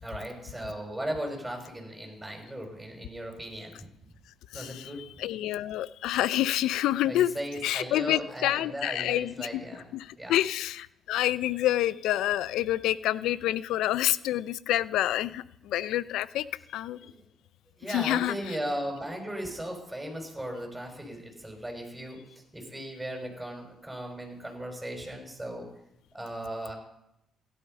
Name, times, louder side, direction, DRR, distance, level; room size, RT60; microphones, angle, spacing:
voice 1, 0.0-3.9 4.5-5.0 7.0-9.9 10.2-10.3 17.0-17.2 17.8-22.2 22.5-25.7 26.1-26.8, right 1 dB, 10° right, 2 dB, 6.1 m, -37 dB
voice 2, 4.5-4.9 5.2-7.3 7.6-9.6 9.9-16.5 16.7-17.0 17.9-18.3, left 13 dB, 80° left, 18 dB, 0.5 m, -28 dB
16.5 x 12.0 x 5.5 m, 0.81 s
supercardioid pair, 70°, 0 cm